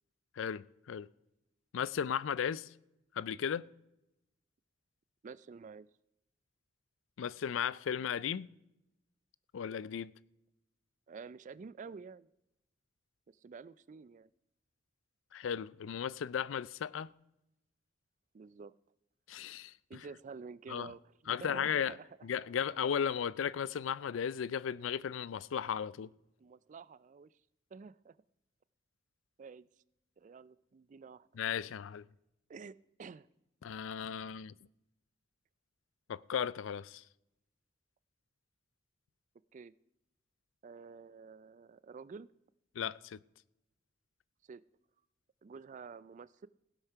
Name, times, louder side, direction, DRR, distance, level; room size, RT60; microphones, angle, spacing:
voice 1, 0.4-1.1 1.7-2.7 3.1-3.7 7.2-8.5 9.5-10.1 15.3-17.1 19.3-20.1 20.7-20.9 21.3-21.9 22.2-26.1 31.4-32.1 33.6-34.5 36.1-37.0 42.7-43.2, left 8 dB, 80° left, 0.4 m, -35 dB
voice 2, 5.2-5.9 11.1-12.3 13.3-14.3 18.3-18.7 19.9-22.1 26.4-27.3 27.7-28.2 29.4-29.7 30.2-31.3 32.5-33.3 39.5-39.7 40.6-42.3 44.5-44.6 45.4-46.5, right 5 dB, 40° right, 0.3 m, -49 dB
16.0 x 8.0 x 5.7 m
head